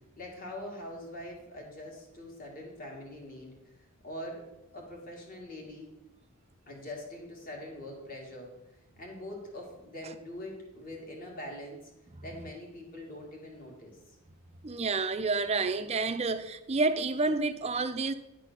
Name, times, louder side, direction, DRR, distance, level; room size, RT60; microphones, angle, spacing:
voice 1, 0.2-3.5 4.0-4.4 4.7-5.9 6.7-8.5 9.0-11.8 12.2-14.0, left 1 dB, 40° left, 2.1 m, -43 dB
voice 2, 14.6-18.1, right 3 dB, 30° right, 0.5 m, -29 dB
10.5 x 4.1 x 6.0 m
head